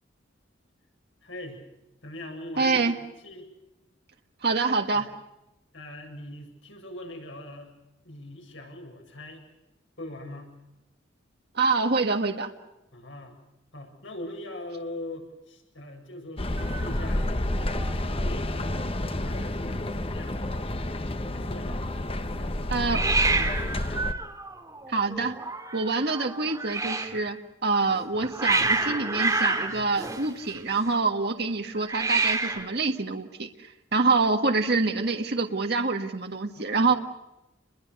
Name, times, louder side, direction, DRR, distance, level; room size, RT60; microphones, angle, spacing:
voice 1, 1.2-1.6 2.0-3.5 4.9-5.1 5.7-7.7 8.0-9.5 10.0-10.5 12.9-13.4 13.7-17.3 17.6-21.9 22.3-24.2 36.6-37.0, left 1 dB, 75° left, 2 dB, 7.9 m, -42 dB
voice 2, 2.6-2.9 4.4-5.1 11.5-12.5 22.7-23.0 24.9-25.4 25.7-27.4 27.6-33.5 33.9-36.9, right 3 dB, 55° right, 4 dB, 1.7 m, -26 dB
sound 1, 16.4-24.1, left 1 dB, 30° left, 1.1 m, -30 dB
Hiss, 16.6-17.9 18.2-18.6 18.9-19.0 19.2-19.9 22.9-27.2 27.9-30.9 31.8-32.8, right 3 dB, 15° right, 2.7 m, -29 dB
30.0 x 22.5 x 6.9 m, 0.93 s
head